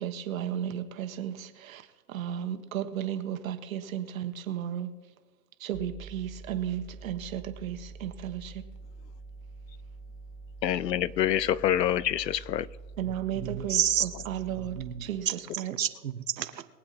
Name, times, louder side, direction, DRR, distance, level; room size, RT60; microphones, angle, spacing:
voice 1, 0.0-1.3 2.1-4.9 5.7-8.4 13.0-14.7 15.1-15.2 15.6-15.7, right 10 dB, 55° right, 8 dB, 1.5 m, -34 dB
sound 1, 5.7-14.9, right 3 dB, 15° left, 1.5 m, -46 dB
voice 2, 10.6-12.7, left 11 dB, 80° left, 21 dB, 0.7 m, -26 dB
voice 3, 13.1-14.1 14.5-16.7, right 9 dB, 85° right, 10 dB, 1.3 m, -31 dB
22.5 x 7.8 x 4.3 m, 1.2 s
hypercardioid pair, 140°, 49 cm